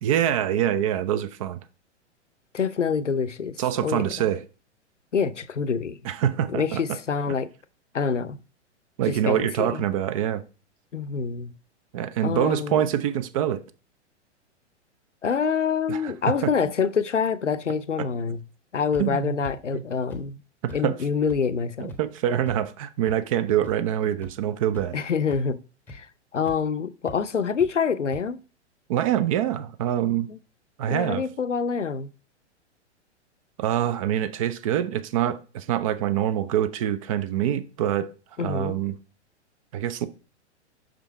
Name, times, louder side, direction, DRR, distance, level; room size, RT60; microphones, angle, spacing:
voice 1, 0.0-1.6 3.6-4.4 6.0-6.8 9.0-10.4 11.9-13.6 15.9-16.1 16.4-16.5 18.0-18.1 19.0-19.8 20.6-21.0 21.8-25.0 28.9-30.3 30.8-31.2 33.6-38.1 38.4-39.0 39.7-40.1, right 11 dB, 30° right, 0.5 m, -25 dB
voice 2, 2.5-4.3 5.1-6.0 6.5-7.5 7.9-8.4 9.1-9.8 10.9-11.5 12.2-12.9 15.2-18.4 18.7-20.4 20.7-21.9 24.9-25.6 25.9-26.1 26.3-28.4 30.3-30.4 30.9-32.1 38.4-38.8, left 6 dB, 80° left, 0.6 m, -26 dB
sound 1, 18.9-19.0 19.4-19.5 20.1-20.2 20.7-20.8 21.3-21.4 21.9-22.0 22.5-22.6 23.1-23.2 23.6-23.7 24.2-24.3 24.7-25.0 25.3-25.4 25.9-26.0 26.5-26.6 27.0-27.2 27.6-27.7 28.1-28.2, left 2 dB, 5° left, 1.0 m, -40 dB
6.1 x 5.1 x 4.5 m
figure-of-eight pair, 105°, 35 cm